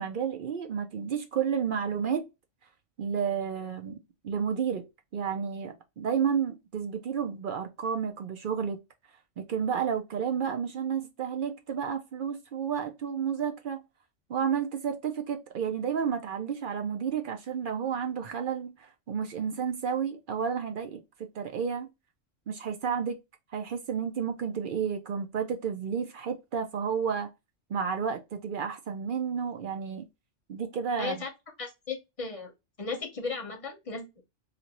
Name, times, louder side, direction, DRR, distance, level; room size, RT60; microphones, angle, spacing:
voice 1, 0.0-2.3 3.0-4.0 4.2-4.9 5.1-8.8 9.4-13.8 14.3-21.9 22.5-23.2 23.5-27.3 27.7-30.1 30.5-31.2, right 7 dB, 60° right, 0.6 m, -31 dB
voice 2, 31.0-31.3 31.6-32.5 32.8-34.2, left 4 dB, 35° left, 0.8 m, -36 dB
2.6 x 2.5 x 2.9 m
omnidirectional pair, 1.2 m